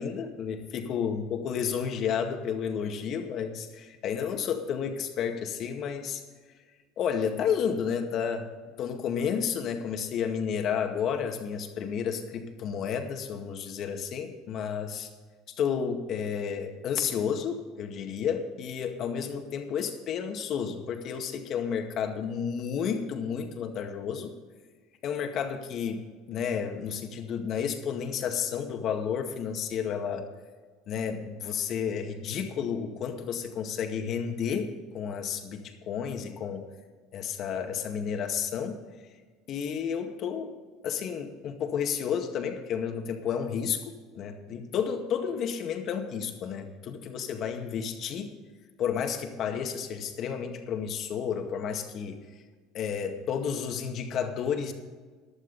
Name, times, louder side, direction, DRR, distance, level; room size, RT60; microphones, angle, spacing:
voice 1, 0.0-6.2 7.0-8.5 8.8-15.1 15.5-24.3 25.0-26.0 26.3-30.3 30.9-34.7 34.9-36.7 37.1-38.8 39.5-40.5 40.8-48.3 48.8-52.2 52.7-54.7, left 7 dB, 50° left, 5 dB, 2.0 m, -31 dB
15.0 x 11.5 x 4.2 m, 1.4 s
supercardioid pair, 110°, 0 cm